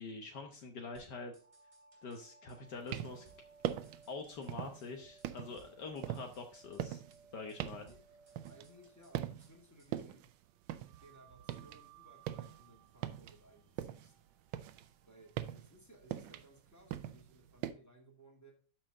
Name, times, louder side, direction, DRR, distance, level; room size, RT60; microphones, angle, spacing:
voice 1, 0.0-1.3 2.0-3.2 4.1-7.0 7.3-7.9, left 4 dB, 65° left, 4 dB, 1.6 m, -45 dB
sound 1, 0.9-2.2 2.5-2.6 2.9-4.5 4.8-4.9 5.2-6.8 7.1-7.2 7.5-9.5 9.8-10.1, right 1 dB, 25° right, 2.7 m, -68 dB
sound 2, 1.2-10.0 10.8-15.6, right 5 dB, 65° right, 1.8 m, -63 dB
sound 3, 2.7-3.3 3.6-4.1 4.5-4.9 5.2-8.9 9.1-9.6 9.9-11.8 12.1-14.1 14.5-17.7, right 12 dB, 90° right, 1.4 m, -41 dB
voice 2, 7.6-8.0 8.5-10.2 11.0-14.1 15.0-18.5, right 1 dB, 10° left, -1 dB, 2.0 m, -61 dB
12.5 x 4.5 x 3.6 m, 0.40 s
omnidirectional pair, 2.0 m